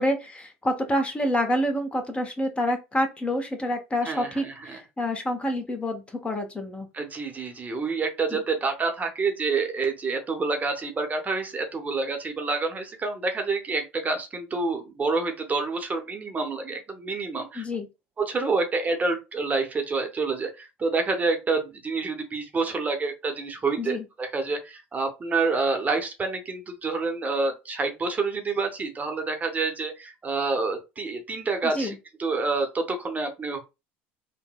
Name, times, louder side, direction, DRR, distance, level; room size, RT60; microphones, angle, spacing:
voice 1, 0.0-6.9 8.3-8.4 17.5-17.9 23.8-24.0 31.6-32.0, equal, 20° left, 5 dB, 0.8 m, -27 dB
voice 2, 4.0-4.8 6.9-17.6 18.2-31.9 32.2-33.6, right 3 dB, 25° right, 4 dB, 0.7 m, -28 dB
3.7 x 2.1 x 2.2 m, 0.26 s
hypercardioid pair, 80°, 6 cm